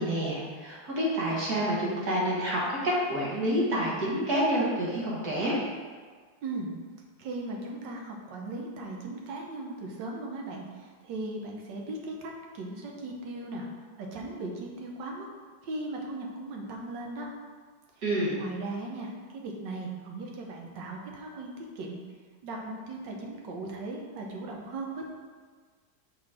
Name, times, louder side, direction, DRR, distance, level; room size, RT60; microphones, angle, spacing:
voice 1, 0.0-5.6 18.0-18.4, equal, 60° right, -6 dB, 1.9 m, -28 dB
voice 2, 6.4-6.7 7.2-13.6 14.0-15.3 15.6-17.3 18.3-22.0 22.4-25.1, right 2 dB, 75° right, 0 dB, 1.6 m, -38 dB
6.1 x 3.9 x 4.9 m, 1.5 s
omnidirectional pair, 2.0 m